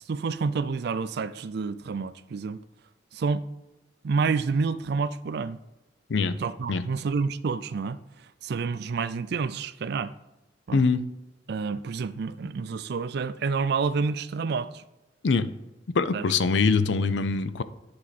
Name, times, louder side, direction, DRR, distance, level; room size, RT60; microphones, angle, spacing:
voice 1, 0.0-2.6 3.1-3.4 4.0-5.6 6.4-8.0 8.4-10.1 10.7-10.8 11.5-14.8 16.1-16.2, right 5 dB, 60° right, 0.4 m, -28 dB
voice 2, 10.7-11.0 15.2-15.5 15.9-17.6, left 4 dB, 75° left, 0.5 m, -23 dB
10.0 x 4.7 x 4.1 m
head